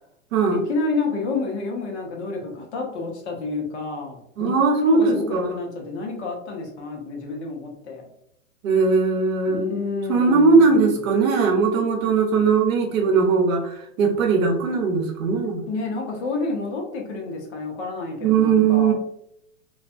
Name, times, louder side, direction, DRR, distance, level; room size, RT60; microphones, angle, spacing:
voice 1, 0.5-8.1 9.5-10.9 15.7-18.9, left 3 dB, 50° left, 0 dB, 0.9 m, -29 dB
voice 2, 4.4-5.6 8.6-9.7 10.1-15.6 18.2-18.9, right 4 dB, 70° right, 2 dB, 0.8 m, -19 dB
2.5 x 2.2 x 2.4 m, 0.75 s
hypercardioid pair, 140°, 41 cm